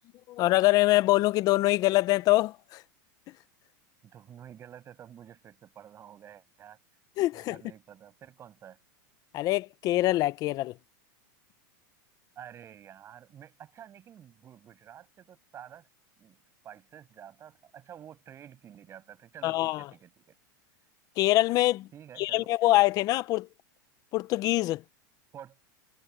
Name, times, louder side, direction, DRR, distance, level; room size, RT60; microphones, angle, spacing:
voice 1, 0.3-2.8 7.2-7.6 9.3-10.7 19.4-19.9 21.2-21.9 22.2-23.5 24.1-24.8, left 18 dB, 35° left, 0.8 m, -24 dB
voice 2, 4.0-6.8 7.3-8.8 12.4-15.9 16.2-20.4 21.9-22.5 25.3-25.6, right 9 dB, 25° right, 7.2 m, -50 dB
supercardioid pair, 145°, 11 cm